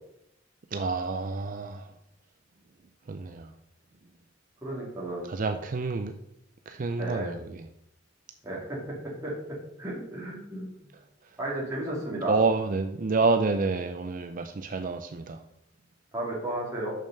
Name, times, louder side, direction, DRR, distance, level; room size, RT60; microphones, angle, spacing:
voice 1, 0.7-1.9 3.1-3.5 5.3-6.1 6.7-7.6 12.3-15.4, right 4 dB, 45° right, 8 dB, 0.5 m, -28 dB
voice 2, 4.6-5.3 7.0-7.4 8.4-8.8 9.2-9.3 9.8-10.7 11.4-12.4 16.1-16.9, right 1 dB, 15° right, -6 dB, 2.6 m, -33 dB
6.5 x 6.4 x 6.5 m, 0.80 s
head